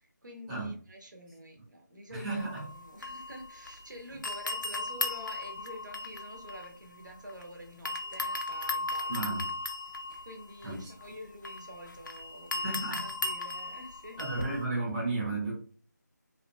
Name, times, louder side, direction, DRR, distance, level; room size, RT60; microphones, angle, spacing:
voice 1, 0.0-9.4 10.2-14.2, equal, 80° right, 0.9 m, -48 dB
voice 2, 2.1-2.6 9.1-9.5 10.6-10.7 12.6-13.1 14.2-15.5, right 2 dB, 10° right, 1.0 m, -33 dB
sound 1, 2.4-3.9 4.2-7.4 7.9-14.6, left 2 dB, 80° left, 0.5 m, -37 dB
2.8 x 2.5 x 2.2 m
figure-of-eight pair, 165°, 10 cm